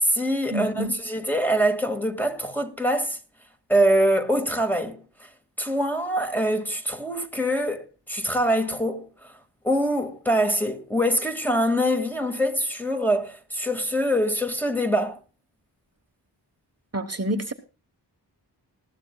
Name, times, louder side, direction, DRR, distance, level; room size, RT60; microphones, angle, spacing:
voice 1, 0.0-3.2 3.7-5.0 5.6-9.1 9.6-15.2, equal, 5° left, 1.9 m, -24 dB
voice 2, 0.5-0.9 16.9-17.5, right 1 dB, 35° right, 1.2 m, -28 dB
20.0 x 14.0 x 2.3 m
wide cardioid pair, 85°, 42 cm